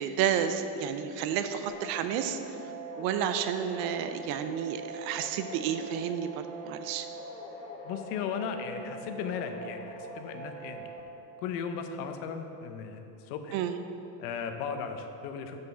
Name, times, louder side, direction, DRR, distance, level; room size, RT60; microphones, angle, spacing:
voice 1, 0.0-2.4 3.0-7.1 13.5-13.8, right 8 dB, 55° right, 9 dB, 0.5 m, -31 dB
sound 1, 1.7-11.0, right 1 dB, 15° left, 0.5 m, -43 dB
voice 2, 7.8-10.9 11.4-13.6 14.2-15.6, left 6 dB, 80° left, 6 dB, 0.9 m, -36 dB
6.3 x 5.3 x 6.7 m, 2.9 s
cardioid pair, 160°, 45 cm